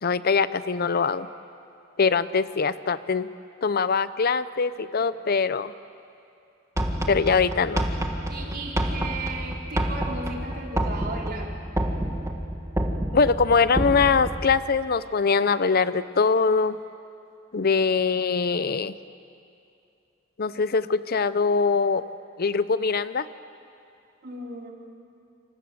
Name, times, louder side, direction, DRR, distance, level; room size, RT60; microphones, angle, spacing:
voice 1, 0.0-1.3 2.0-3.3 3.6-5.7 7.1-7.9 13.1-16.8 17.5-18.9 20.4-22.0 22.4-23.3, left 5 dB, 50° left, 14 dB, 0.6 m, -22 dB
sound 1, 6.8-14.6, right 1 dB, 15° right, 1.8 m, -29 dB
voice 2, 8.3-11.5 24.2-24.7, right 2 dB, 55° right, -1 dB, 4.1 m, -35 dB
27.5 x 26.0 x 7.7 m, 2.6 s
head